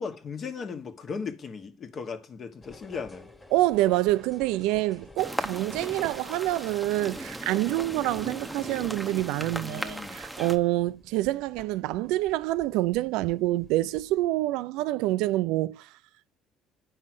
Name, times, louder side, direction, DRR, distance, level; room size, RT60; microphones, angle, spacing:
voice 1, 0.0-3.3 9.4-10.2, left 5 dB, 40° left, 1.3 m, -37 dB
sound 1, 2.6-14.3, left 2 dB, 10° left, 1.7 m, -51 dB
voice 2, 3.5-15.9, right 16 dB, 85° right, 0.5 m, -27 dB
sound 2, 5.2-10.6, right 1 dB, 5° right, 0.8 m, -37 dB
9.6 x 5.6 x 6.1 m
cardioid pair, 125°, 0 cm